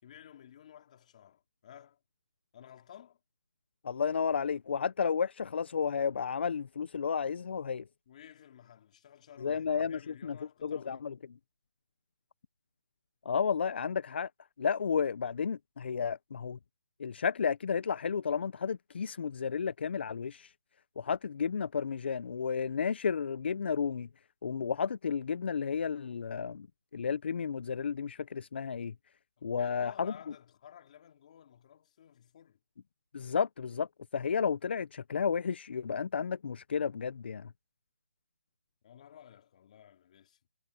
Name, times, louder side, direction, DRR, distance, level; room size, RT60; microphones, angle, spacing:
voice 1, 0.0-2.0 2.5-3.2 8.1-11.1 29.4-32.6 38.8-40.4, left 10 dB, 30° left, 3.2 m, -54 dB
voice 2, 3.8-7.8 9.4-10.4 10.6-11.1 13.3-14.3 14.6-16.6 17.0-20.5 21.0-24.1 24.4-26.7 26.9-28.9 29.4-30.1 33.1-37.5, left 6 dB, 50° left, 0.6 m, -32 dB
hypercardioid pair, 170°, 8 cm